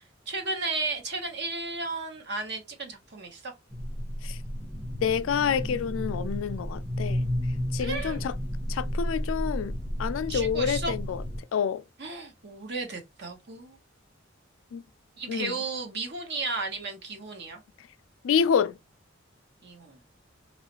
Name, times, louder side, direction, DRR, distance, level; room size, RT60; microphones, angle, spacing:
voice 1, 0.3-3.5 7.8-8.3 10.3-10.9 12.0-13.8 15.2-17.6 19.6-20.0, right 3 dB, 60° right, 1.0 m, -34 dB
sound 1, 3.7-11.4, equal, ahead, 0.6 m, -32 dB
voice 2, 5.0-7.2 7.7-8.4 8.7-11.2 11.5-11.8 14.7-14.8 15.3-15.5 18.2-18.8, left 7 dB, 85° left, 0.3 m, -28 dB
3.0 x 2.3 x 2.9 m
head